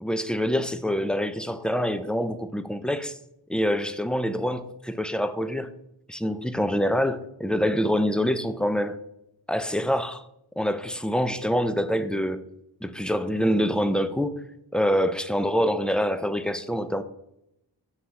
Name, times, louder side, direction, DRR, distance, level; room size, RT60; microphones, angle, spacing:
voice 1, 0.0-3.2 3.5-5.7 6.1-9.0 9.5-10.2 10.6-12.4 12.8-14.3 14.7-17.0, equal, ahead, 11 dB, 0.4 m, -25 dB
6.0 x 4.1 x 4.7 m, 0.81 s
cardioid pair, 50°, 45 cm